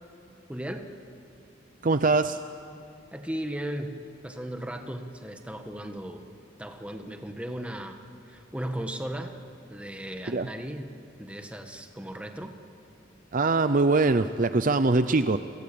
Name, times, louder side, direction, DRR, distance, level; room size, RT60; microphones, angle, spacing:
voice 1, 0.5-0.8 3.1-4.0 4.2-6.2 6.6-8.0 8.3-9.3 9.7-10.9 11.2-12.5, right 1 dB, 5° right, 5 dB, 1.6 m, -36 dB
voice 2, 1.8-2.4 10.3-10.5 13.3-15.4, right 3 dB, 40° right, 11 dB, 0.6 m, -22 dB
29.0 x 22.5 x 8.6 m, 2.6 s
head